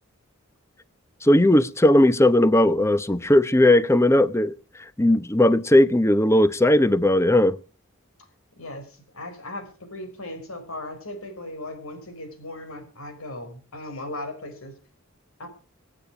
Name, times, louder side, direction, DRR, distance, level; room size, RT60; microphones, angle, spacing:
voice 1, 1.2-7.6, left 1 dB, 15° left, 0.8 m, -18 dB
voice 2, 8.6-14.7 15.4-15.5, left 1 dB, 90° left, 5.2 m, -37 dB
24.5 x 8.9 x 4.9 m
head